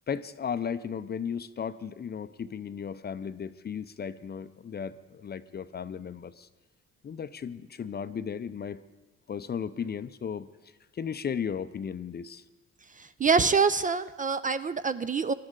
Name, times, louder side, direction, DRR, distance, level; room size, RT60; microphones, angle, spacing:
voice 1, 0.1-6.5 7.0-8.8 9.3-10.5 10.9-12.4, left 7 dB, 35° left, 13 dB, 0.5 m, -35 dB
voice 2, 13.2-15.3, right 5 dB, 25° right, 13 dB, 0.4 m, -25 dB
19.0 x 11.5 x 3.8 m, 1.1 s
cardioid pair, 90°, 30 cm